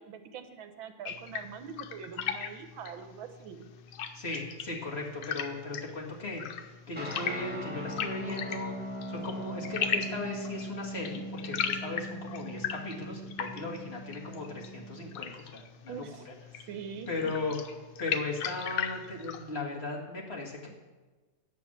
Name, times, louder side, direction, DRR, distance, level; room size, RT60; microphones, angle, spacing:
voice 1, 0.0-3.7 15.9-16.3 16.7-17.4, right 7 dB, 75° right, 8 dB, 1.7 m, -43 dB
sound 1, 1.1-19.5, left 7 dB, 90° left, 1.6 m, -38 dB
voice 2, 4.1-8.7 9.1-16.3 17.1-17.6 18.0-20.7, left 3 dB, 30° left, -2 dB, 2.1 m, -37 dB
sound 2, 7.0-15.2, right 1 dB, 5° right, 1.6 m, -40 dB
9.5 x 7.5 x 7.3 m, 1.3 s
omnidirectional pair, 2.2 m